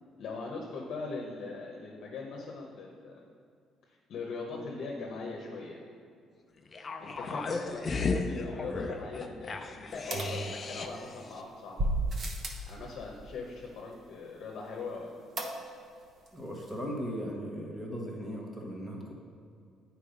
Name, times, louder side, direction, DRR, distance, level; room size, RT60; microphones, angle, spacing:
voice 1, 0.2-3.2 4.1-5.8 7.0-11.9 12.7-15.1, left 3 dB, 55° left, -2 dB, 1.0 m, -41 dB
sound 1, 6.7-11.1 11.4-11.5, left 4 dB, 25° left, 0.5 m, -35 dB
sound 2, 10.1-11.1 11.8-12.7 15.4-16.0 16.3-16.4 16.6-16.7, right 2 dB, 40° right, 0.9 m, -33 dB
voice 2, 16.3-19.1, equal, 10° right, -1 dB, 1.3 m, -37 dB
8.8 x 4.5 x 5.2 m, 2.4 s
cardioid pair, 160°, 0 cm